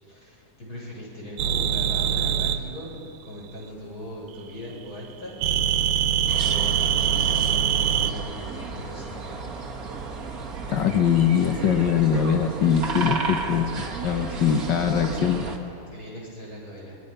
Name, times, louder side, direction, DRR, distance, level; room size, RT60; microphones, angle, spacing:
voice 1, 0.0-2.9 3.2-5.4 5.9-6.1 6.4-9.5 14.6-15.2 15.9-17.0, left 1 dB, 25° left, -5 dB, 7.6 m, -39 dB
sound 1, 1.4-2.6 5.4-8.1, right 9 dB, 85° right, 2.5 m, -23 dB
sound 2, 6.3-15.6, right 4 dB, 40° right, 1.4 m, -33 dB
voice 2, 10.7-13.7 14.0-15.4, left 8 dB, 65° left, 4 dB, 1.1 m, -22 dB
29.0 x 24.0 x 5.6 m, 2.6 s
omnidirectional pair, 3.6 m